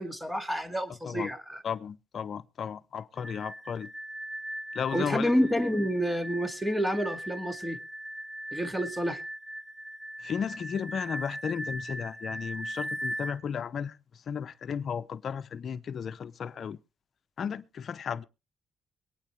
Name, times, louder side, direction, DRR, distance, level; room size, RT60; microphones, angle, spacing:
voice 1, 0.0-1.6 4.9-7.8 8.5-9.2, equal, 5° right, 2.0 m, -29 dB
voice 2, 1.6-3.9 4.7-5.3 10.2-14.0 14.3-16.8 17.4-18.2, left 7 dB, 55° left, 0.7 m, -34 dB
sound 1, 3.2-13.4, right 1 dB, 25° right, 1.8 m, -39 dB
23.5 x 9.3 x 3.2 m
cardioid pair, 90°, 0 cm